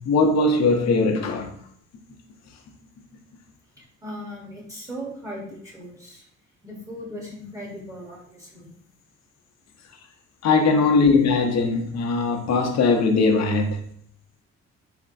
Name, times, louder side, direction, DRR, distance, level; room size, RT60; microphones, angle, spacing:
voice 1, 0.0-1.5 10.4-13.8, left 3 dB, 60° left, 0.7 m, -20 dB
voice 2, 3.7-6.2 6.6-8.7, equal, 10° right, 1.2 m, -38 dB
3.5 x 3.3 x 2.6 m
cardioid pair, 90°, 30 cm